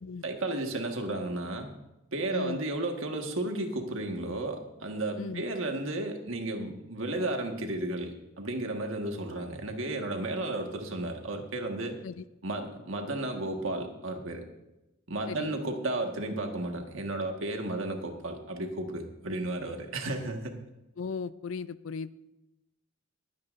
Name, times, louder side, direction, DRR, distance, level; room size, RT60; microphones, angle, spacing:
voice 1, 0.2-1.8 2.1-12.0 12.4-14.4 15.1-20.6, right 2 dB, 70° right, 3 dB, 1.6 m, -33 dB
voice 2, 2.3-2.6 5.2-5.4 12.0-12.2 15.3-15.5 21.0-22.1, left 5 dB, 70° left, 16 dB, 0.5 m, -36 dB
20.0 x 9.7 x 2.6 m, 0.96 s
head